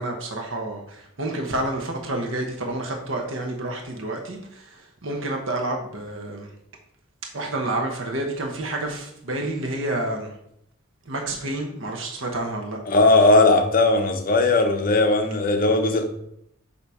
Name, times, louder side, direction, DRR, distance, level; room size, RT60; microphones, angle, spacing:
voice 1, 0.0-6.5 7.3-10.3 11.1-12.8, right 2 dB, 70° right, 0.9 m, -29 dB
voice 2, 12.9-16.0, left 2 dB, 45° left, 0.7 m, -18 dB
6.9 x 2.8 x 4.8 m
head